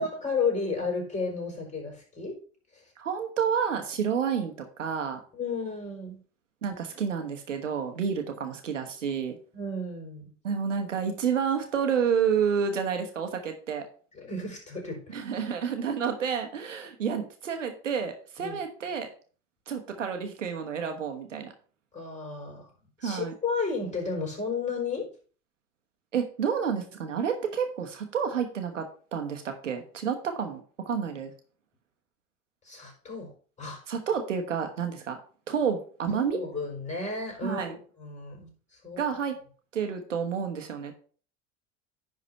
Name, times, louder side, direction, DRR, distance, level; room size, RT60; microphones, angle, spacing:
voice 1, 0.0-2.4 2.7-2.8 5.3-6.2 9.5-10.3 14.1-15.1 18.4-18.6 21.9-22.7 23.0-25.1 32.6-33.8 36.3-39.0, left 4 dB, 20° left, 1 dB, 5.0 m, -33 dB
voice 2, 3.0-5.2 6.6-9.4 10.4-13.8 15.1-19.1 19.7-21.5 23.0-23.3 26.1-28.9 29.1-31.3 33.9-35.2 35.5-36.4 37.4-37.7 39.0-39.4 39.7-40.9, right 7 dB, 85° right, 5 dB, 1.3 m, -29 dB
10.0 x 4.1 x 5.5 m, 0.40 s
figure-of-eight pair, 65°, 36 cm